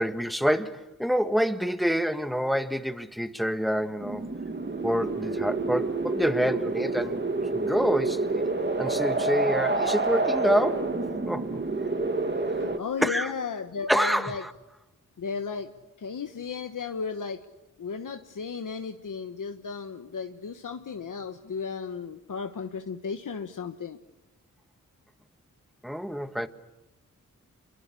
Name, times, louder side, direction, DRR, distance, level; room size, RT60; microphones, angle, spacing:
voice 1, 0.0-4.3 4.8-7.2 7.5-8.5 8.8-10.9 11.2-11.6 13.0-13.3 13.9-14.5 25.8-26.5, equal, ahead, 9 dB, 1.5 m, -27 dB
sound 1, 4.0-12.8, right 3 dB, 35° right, 2.1 m, -28 dB
voice 2, 12.6-14.4 15.2-15.7 16.0-17.4 17.8-24.0, left 5 dB, 70° left, 7 dB, 1.3 m, -34 dB
27.5 x 23.0 x 8.4 m, 0.98 s
wide cardioid pair, 75°, 33 cm